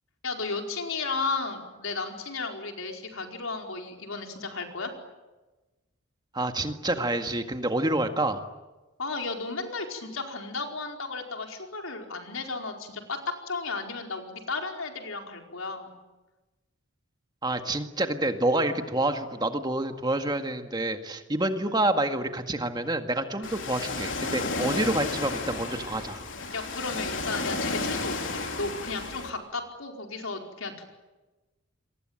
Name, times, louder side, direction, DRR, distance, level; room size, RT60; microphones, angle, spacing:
voice 1, 0.2-4.9 9.0-15.9 26.5-30.8, left 3 dB, 85° left, 3 dB, 4.9 m, -34 dB
voice 2, 6.3-8.4 17.4-26.2, right 1 dB, 20° right, 6 dB, 1.8 m, -28 dB
Ocean, 23.4-29.3, left 3 dB, 65° left, 4.1 m, -32 dB
28.5 x 23.0 x 9.0 m, 1.1 s
head